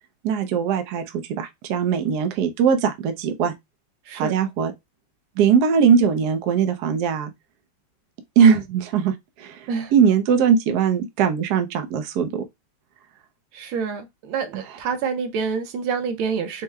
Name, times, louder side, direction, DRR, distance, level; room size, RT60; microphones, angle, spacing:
voice 1, 0.2-3.5 4.1-4.7 5.4-7.3 8.4-12.4 14.5-14.6, right 7 dB, 65° right, 1.1 m, -20 dB
voice 2, 4.1-4.4 9.7-9.9 13.5-16.6, right 5 dB, 85° right, 1.6 m, -27 dB
4.6 x 2.1 x 3.3 m
omnidirectional pair, 2.3 m